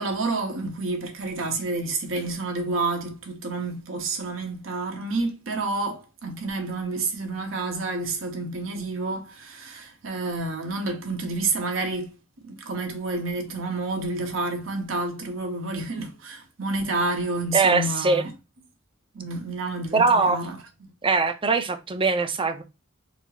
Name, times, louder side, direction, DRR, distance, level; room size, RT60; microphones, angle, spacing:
voice 1, 0.0-12.1 12.4-18.3 19.1-20.6, right 3 dB, 75° right, 1.1 m, -29 dB
voice 2, 17.5-18.2 19.9-20.4 21.0-22.6, right 4 dB, 25° right, 0.5 m, -21 dB
4.2 x 2.0 x 4.3 m
head